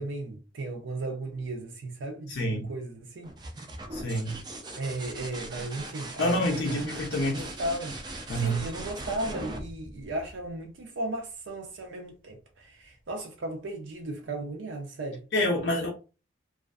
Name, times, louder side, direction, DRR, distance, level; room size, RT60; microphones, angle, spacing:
voice 1, 0.0-3.3 4.8-8.0 8.3-15.2, right 2 dB, 80° right, 0.5 m, -36 dB
voice 2, 2.3-2.7 3.9-4.4 6.2-7.5 8.3-8.7 15.3-15.9, equal, 65° left, 0.5 m, -27 dB
sound 1, 3.2-10.8 12.6-13.2, right 2 dB, 20° right, 0.3 m, -40 dB
2.4 x 2.4 x 2.3 m
head